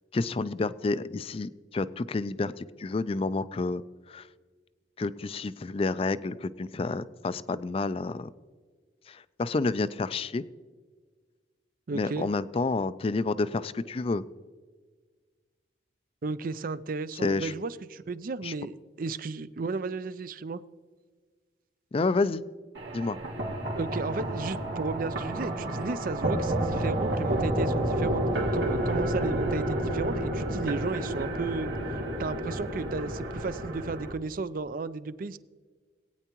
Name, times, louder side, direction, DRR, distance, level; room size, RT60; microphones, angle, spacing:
voice 1, 0.1-3.8 4.1-4.3 5.0-8.3 9.1-10.4 11.9-14.2 17.2-17.5 18.4-18.5 21.9-22.4 22.9-23.2, left 3 dB, 30° left, 15 dB, 0.4 m, -29 dB
voice 2, 11.9-12.3 16.2-20.6 23.8-28.2 28.5-35.4, right 4 dB, 50° right, 15 dB, 0.4 m, -34 dB
sound 1, 22.7-34.1, right 1 dB, 85° right, 2.3 m, -30 dB
19.5 x 9.2 x 3.0 m, 1.5 s
head